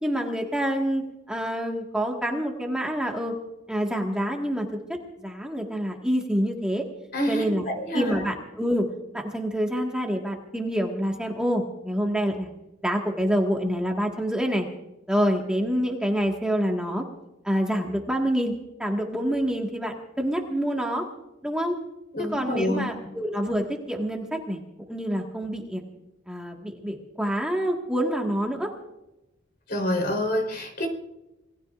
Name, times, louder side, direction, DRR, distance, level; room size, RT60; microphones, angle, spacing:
voice 1, 0.0-3.4 3.7-4.8 5.2-6.9 7.3-7.6 7.9-8.9 9.1-12.5 12.8-14.7 15.1-17.0 17.4-18.5 18.8-21.1 21.4-21.8 22.2-24.6 24.9-25.8 26.3-28.7, equal, 5° right, 0 dB, 1.7 m, -27 dB
voice 2, 7.1-8.3 22.1-22.8 29.7-30.9, equal, 50° left, 3 dB, 3.8 m, -27 dB
27.5 x 19.5 x 2.5 m, 0.95 s
head